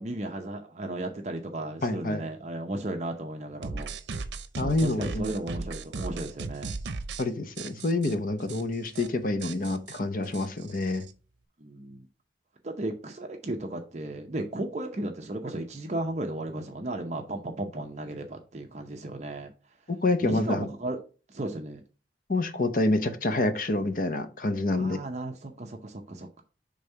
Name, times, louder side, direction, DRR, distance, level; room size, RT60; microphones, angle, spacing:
voice 1, 0.0-3.9 4.6-6.8 11.6-12.1 12.6-19.5 20.2-21.0 21.3-21.8 24.7-26.4, right 1 dB, 40° right, 0.6 m, -35 dB
voice 2, 1.8-2.2 4.6-5.3 7.2-11.0 19.9-20.7 22.3-25.0, left 2 dB, 50° left, 0.7 m, -27 dB
sound 1, 3.6-7.2 7.6-8.1 8.5-8.6 8.9-9.1 9.4-11.1, right 3 dB, 90° right, 0.6 m, -37 dB
5.1 x 3.5 x 5.4 m
head